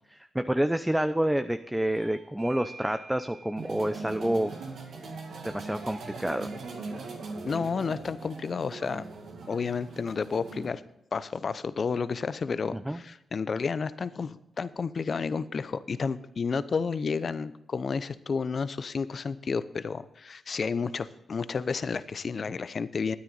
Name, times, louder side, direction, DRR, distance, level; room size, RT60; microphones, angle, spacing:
voice 1, 0.1-4.6 5.4-6.5 12.7-13.0, right 1 dB, 10° right, 9 dB, 0.7 m, -28 dB
Bell / Doorbell, 1.9-7.1, right 3 dB, 90° right, 4.0 m, -52 dB
sound 1, 3.6-10.7, right 3 dB, 75° right, 2.3 m, -40 dB
voice 2, 7.4-9.0 9.5-10.8 11.1-23.2, left 5 dB, 55° left, 15 dB, 0.7 m, -31 dB
12.5 x 9.7 x 4.1 m, 0.85 s
supercardioid pair, 50°, 0 cm